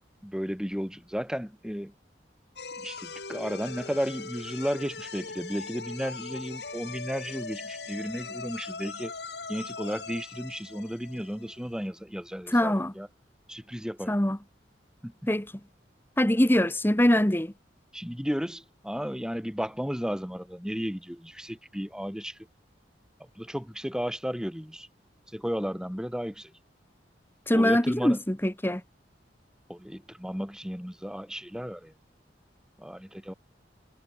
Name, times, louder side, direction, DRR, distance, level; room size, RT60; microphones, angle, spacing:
voice 1, 0.2-1.9 2.8-9.1 9.5-13.1 13.5-14.1 15.0-15.1 17.9-22.4 23.4-24.9 25.3-26.5 27.5-28.2 29.7-31.9 32.8-33.3, equal, 5° right, 3.0 m, -34 dB
sound 1, 2.6-11.8, left 4 dB, 65° left, 4.0 m, -40 dB
voice 2, 12.5-12.9 14.1-14.4 15.3-15.5 16.2-17.5 27.5-28.8, left 1 dB, 10° left, 1.2 m, -23 dB
head